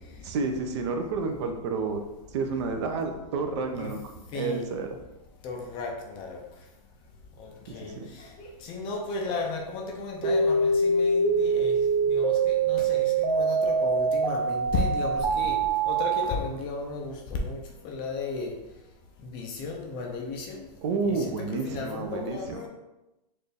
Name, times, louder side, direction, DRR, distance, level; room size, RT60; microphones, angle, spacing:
voice 1, 0.2-2.0 2.3-4.9 7.7-8.1 20.8-22.6, right 4 dB, 45° right, 5 dB, 0.5 m, -30 dB
voice 2, 4.3-4.6 5.4-6.4 7.4-11.8 12.1-17.6 17.8-18.5 19.2-20.6 21.1-22.7, left 3 dB, 25° left, 1 dB, 0.4 m, -34 dB
sound 1, 10.2-16.2, right 4 dB, 70° right, 0.8 m, -24 dB
4.4 x 2.5 x 3.3 m, 0.98 s
hypercardioid pair, 150°, 21 cm